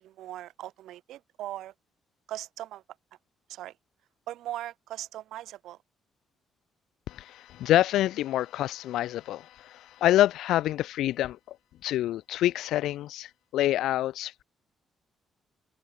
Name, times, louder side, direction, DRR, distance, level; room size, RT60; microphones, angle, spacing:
voice 1, 0.0-1.7 2.3-2.8 3.5-3.8 4.3-5.8, right 13 dB, 85° right, 0.5 m, -39 dB
voice 2, 7.1-11.6 11.8-14.4, left 14 dB, 85° left, 0.3 m, -27 dB
open air
cardioid pair, 90°, 0 cm